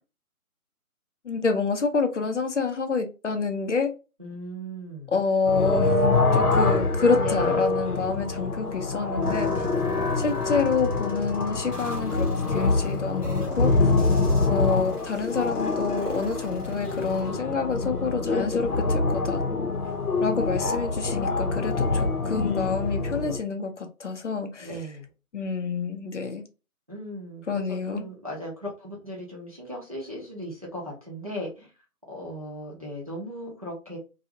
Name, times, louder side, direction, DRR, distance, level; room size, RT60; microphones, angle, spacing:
voice 1, 1.2-3.9 5.1-6.0 6.3-9.7 10.2-13.9 14.5-19.4 20.2-24.7 25.3-26.4 27.5-28.1, left 4 dB, 55° left, 0.6 m, -27 dB
voice 2, 4.2-5.1 7.2-7.7 13.9-14.3 24.6-25.1 26.9-31.7 32.1-34.0, equal, 25° right, 0.6 m, -37 dB
sound 1, 5.5-23.4, left 3 dB, 90° left, 0.9 m, -25 dB
sound 2, 9.2-17.2, left 1 dB, 5° left, 0.8 m, -40 dB
2.6 x 2.3 x 2.8 m
figure-of-eight pair, 160°, 45 cm